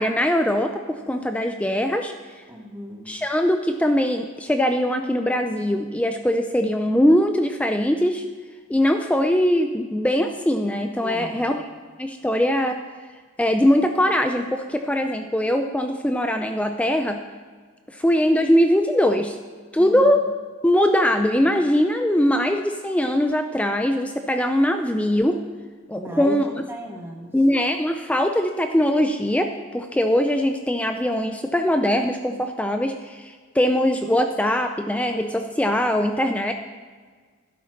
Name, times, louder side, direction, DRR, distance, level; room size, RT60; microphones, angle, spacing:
voice 1, 0.0-2.1 3.1-8.2 8.7-11.7 12.0-12.8 13.4-17.2 17.9-19.4 19.7-20.2 20.6-25.4 25.9-26.7 27.3-36.5, equal, 5° left, 6 dB, 0.4 m, -21 dB
voice 2, 2.5-3.1 11.0-11.5 19.8-20.2 26.0-27.3, equal, 10° right, 1 dB, 1.2 m, -35 dB
12.0 x 11.0 x 3.2 m, 1.5 s
head